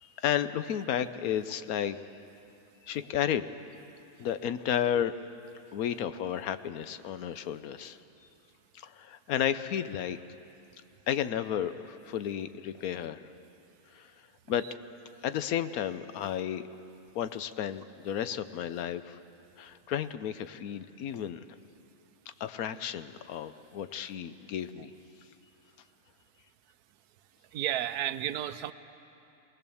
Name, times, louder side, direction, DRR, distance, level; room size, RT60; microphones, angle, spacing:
voice 1, 0.0-2.0 2.8-3.5 4.2-5.1 5.7-8.0 8.7-10.2 11.1-13.2 13.9-14.1 14.5-14.6 15.2-16.6 17.1-19.2 19.6-21.4 22.4-24.9, left 10 dB, 75° left, 12 dB, 1.1 m, -32 dB
voice 2, 27.5-28.7, right 11 dB, 90° right, 13 dB, 1.2 m, -32 dB
23.5 x 18.5 x 7.0 m, 2.8 s
omnidirectional pair, 1.6 m